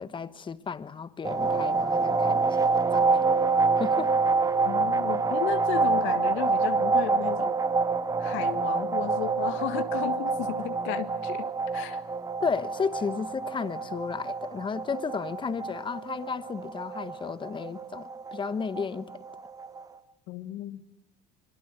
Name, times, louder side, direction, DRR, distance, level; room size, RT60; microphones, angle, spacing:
voice 1, 0.0-3.1 3.8-4.1 12.4-19.1, left 5 dB, 25° left, 1.2 m, -33 dB
sound 1, 1.2-19.8, right 4 dB, 15° right, 0.9 m, -27 dB
voice 2, 4.6-7.6 8.2-12.0 20.3-20.8, left 13 dB, 70° left, 1.6 m, -34 dB
26.5 x 22.5 x 8.1 m
cardioid pair, 125°, 21 cm